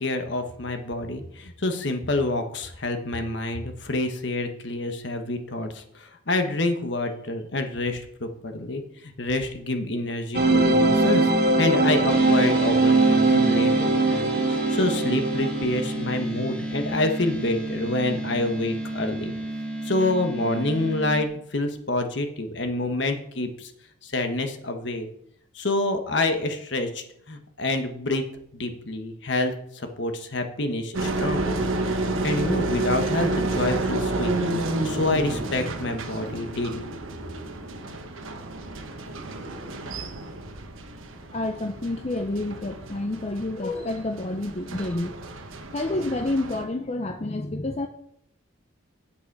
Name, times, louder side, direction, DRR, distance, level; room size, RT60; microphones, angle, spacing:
voice 1, 0.0-19.3 19.8-23.7 24.0-25.1 25.5-28.2 28.5-34.3 34.8-36.9, left 2 dB, 60° left, 6 dB, 1.2 m, -27 dB
sound 1, 10.3-16.0, right 2 dB, 50° right, 1.4 m, -21 dB
sound 2, 12.1-21.3, equal, 5° left, 1.4 m, -32 dB
sound 3, 30.9-46.6, right 2 dB, 85° right, 1.2 m, -30 dB
voice 2, 41.3-45.2 45.7-47.9, left 2 dB, 30° left, 6 dB, 0.6 m, -29 dB
9.1 x 8.7 x 4.7 m, 0.71 s
head